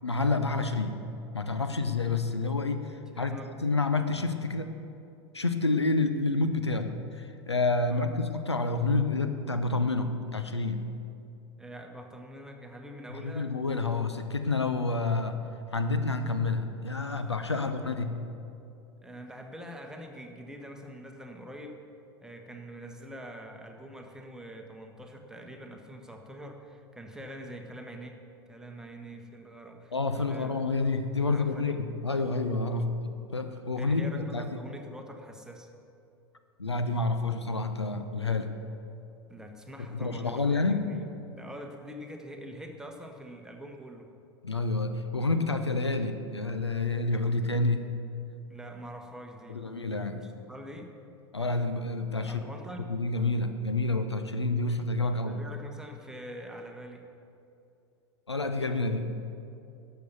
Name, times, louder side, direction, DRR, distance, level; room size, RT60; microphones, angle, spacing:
voice 1, 0.0-1.1 1.3-4.7 5.3-10.9 13.1-15.4 15.7-18.2 29.9-32.9 33.3-34.6 36.6-38.5 39.9-40.9 44.4-47.9 49.5-50.2 51.3-52.5 52.9-55.4 58.3-59.1, left 3 dB, 85° left, 8 dB, 0.6 m, -29 dB
voice 2, 3.1-3.6 7.9-8.1 11.6-13.5 17.5-17.6 19.0-21.8 22.2-28.2 28.5-30.6 31.3-31.8 32.7-32.8 33.8-35.7 39.3-44.1 48.5-49.6 50.1-50.9 52.2-52.9 55.2-57.0, equal, 5° right, 3 dB, 1.2 m, -44 dB
12.0 x 6.9 x 6.9 m, 2.6 s
figure-of-eight pair, 85°, 14 cm